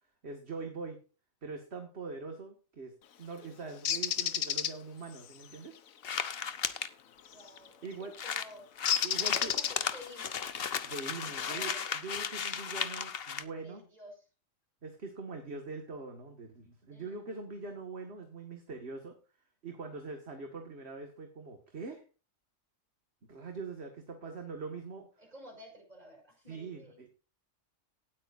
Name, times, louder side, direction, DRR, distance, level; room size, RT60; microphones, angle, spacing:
voice 1, 0.2-1.0 1.4-2.9 3.2-5.8 7.8-8.2 9.0-9.5 10.8-13.8 14.8-19.2 19.6-22.0 23.3-25.1 26.5-27.1, right 4 dB, 50° right, 4 dB, 2.1 m, -43 dB
Bird, 3.9-4.7 7.3-7.6 8.9-10.1, left 9 dB, 85° left, 1.3 m, -30 dB
sound 1, 6.0-6.9 7.6-7.7 7.9-8.0 8.1-13.4, left 7 dB, 50° left, 1.0 m, -35 dB
voice 2, 7.3-8.7 9.2-10.4 11.3-11.9 13.6-14.2 16.9-17.4 25.2-27.0, equal, 30° right, 1 dB, 5.7 m, -52 dB
18.5 x 8.6 x 2.6 m, 0.34 s
omnidirectional pair, 1.4 m